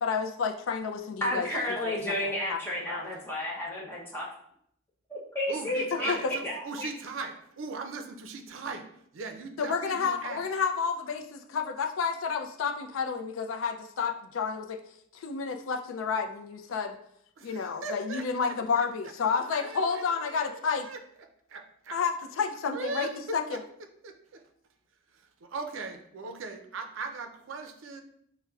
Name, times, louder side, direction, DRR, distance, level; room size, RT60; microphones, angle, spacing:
voice 1, 0.0-1.5 1.9-2.6 2.8-3.1 6.1-6.2 9.6-14.8 15.1-17.0 17.4-20.9 21.9-23.1 23.3-23.4, left 5 dB, 85° left, 5 dB, 0.4 m, -30 dB
voice 2, 1.2-4.3 5.1-6.1 6.4-6.9, left 1 dB, 10° left, -7 dB, 0.7 m, -32 dB
voice 3, 5.5-10.4 17.4-19.1 19.4-22.0 22.7-23.6 24.0-24.4 25.1-28.0, right 4 dB, 70° right, 5 dB, 0.5 m, -40 dB
5.8 x 2.1 x 2.3 m, 0.69 s
head